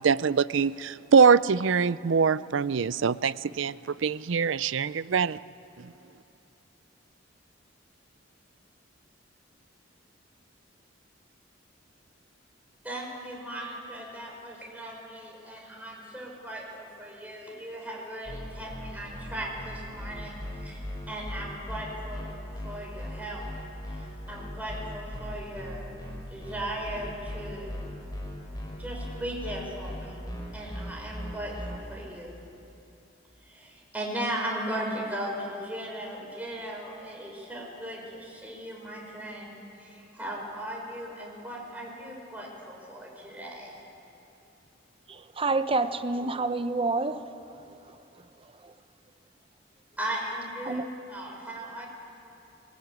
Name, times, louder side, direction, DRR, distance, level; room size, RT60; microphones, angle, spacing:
voice 1, 0.0-3.8 4.0-5.4, right 5 dB, 75° right, 18 dB, 0.5 m, -23 dB
voice 2, 12.8-23.4 23.9-25.9 26.3-27.9 28.8-30.3 30.5-32.4 33.4-43.8 50.0-51.9, right 1 dB, 10° right, -2 dB, 6.0 m, -37 dB
sound 1, 18.2-31.8, left 1 dB, 20° left, 6.1 m, -38 dB
voice 3, 45.4-47.3 50.7-50.8, right 3 dB, 30° right, 10 dB, 0.9 m, -27 dB
22.0 x 21.5 x 9.2 m, 2.9 s
head